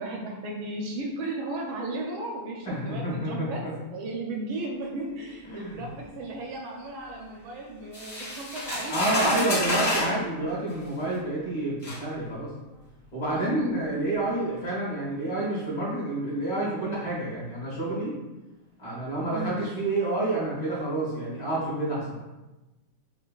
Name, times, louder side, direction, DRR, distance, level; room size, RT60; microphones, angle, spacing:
voice 1, 0.0-3.6 3.9-9.8 10.0-10.1 13.2-13.7 19.3-19.5, right 2 dB, 75° right, 0 dB, 1.3 m, -35 dB
voice 2, 2.6-3.7 5.5-5.8 8.9-12.5 13.1-18.2 18.8-22.3, right 1 dB, 50° left, -7 dB, 1.4 m, -29 dB
sound 1, 7.9-10.2 11.1-11.2 11.8-12.0, left 1 dB, 25° left, 0.8 m, -29 dB
6.5 x 2.3 x 2.3 m, 1.1 s
omnidirectional pair, 2.4 m